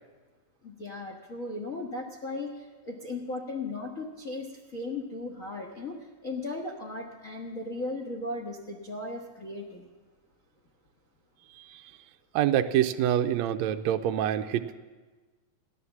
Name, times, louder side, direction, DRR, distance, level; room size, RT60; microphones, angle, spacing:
voice 1, 0.6-9.9, left 2 dB, 90° left, 0 dB, 0.7 m, -37 dB
voice 2, 12.3-14.8, right 11 dB, 85° right, 6 dB, 1.5 m, -26 dB
16.0 x 11.0 x 7.1 m, 1.3 s
omnidirectional pair, 3.9 m